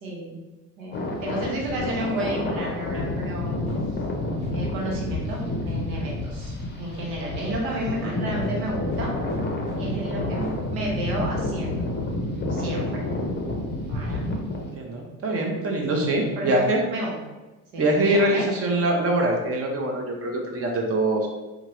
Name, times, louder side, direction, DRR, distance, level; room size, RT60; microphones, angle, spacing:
voice 1, 0.0-0.4 0.8-3.5 4.5-9.1 9.8-11.7 12.5-13.0 13.9-14.3 15.9-17.2 17.7-18.4, right 1 dB, 75° right, -3 dB, 1.1 m, -32 dB
sound 1, 0.9-14.7, left 2 dB, 25° left, 0.6 m, -29 dB
sound 2, 3.7-11.7, equal, 15° right, 1.2 m, -41 dB
voice 2, 14.6-16.8 17.8-21.3, right 1 dB, 30° right, 0 dB, 0.7 m, -24 dB
2.9 x 2.4 x 2.9 m, 1.1 s
hypercardioid pair, 80°, 43 cm